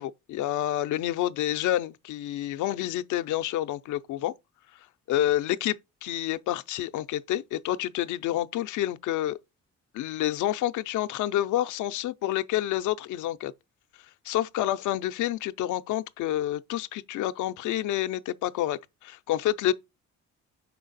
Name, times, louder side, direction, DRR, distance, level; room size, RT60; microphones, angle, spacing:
voice 1, 0.0-4.3 5.1-9.4 9.9-13.5 14.2-19.7, left 13 dB, 80° left, 0.5 m, -28 dB
5.6 x 4.5 x 3.9 m
cardioid pair, 90°, 30 cm